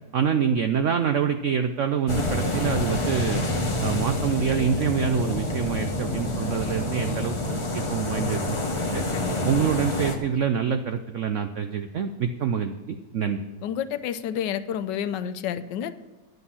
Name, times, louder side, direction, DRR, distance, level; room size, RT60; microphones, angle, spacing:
voice 1, 0.1-3.4 3.8-9.1 9.4-13.4, right 7 dB, 75° right, 8 dB, 0.6 m, -26 dB
sound 1, 2.1-10.2, left 2 dB, 20° left, 0.8 m, -27 dB
voice 2, 13.6-15.9, left 9 dB, 80° left, 12 dB, 1.2 m, -30 dB
10.5 x 8.1 x 5.6 m, 1.2 s
omnidirectional pair, 1.9 m